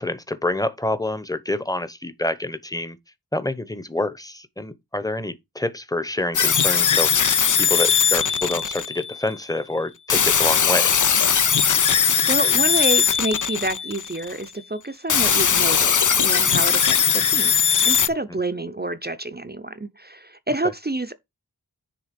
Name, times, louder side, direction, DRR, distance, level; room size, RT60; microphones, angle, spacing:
voice 1, 0.0-3.0 3.3-11.0, left 2 dB, 10° left, 1.0 m, -27 dB
sound 1, 6.3-9.2 10.1-14.3 15.1-18.1, left 7 dB, 55° left, 0.6 m, -19 dB
voice 2, 11.9-17.6 17.8-21.1, right 2 dB, 25° right, 0.7 m, -28 dB
10.0 x 3.5 x 5.2 m
wide cardioid pair, 55°, 38 cm